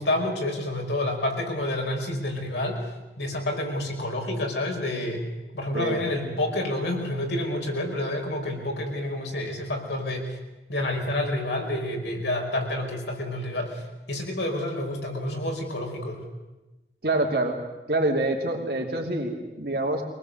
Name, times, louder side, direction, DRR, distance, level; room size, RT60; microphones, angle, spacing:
voice 1, 0.0-2.9 3.2-5.3 5.5-10.4 10.7-13.8 14.1-16.2, left 1 dB, 85° left, 1 dB, 5.4 m, -29 dB
voice 2, 17.0-17.5 17.9-20.0, right 2 dB, 60° right, 1 dB, 2.9 m, -26 dB
23.5 x 19.5 x 8.0 m, 1.1 s
head